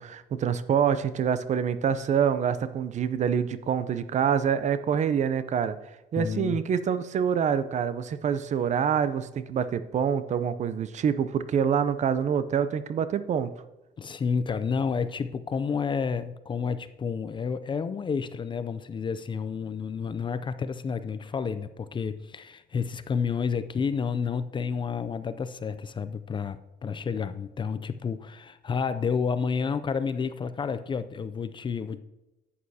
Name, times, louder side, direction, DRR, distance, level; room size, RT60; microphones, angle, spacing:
voice 1, 0.0-5.8 6.1-13.5, right 7 dB, 45° right, 13 dB, 0.5 m, -26 dB
voice 2, 6.2-6.6 14.0-32.0, left 6 dB, 30° left, 13 dB, 0.4 m, -30 dB
11.0 x 8.5 x 2.8 m, 0.98 s
cardioid pair, 110°, 17 cm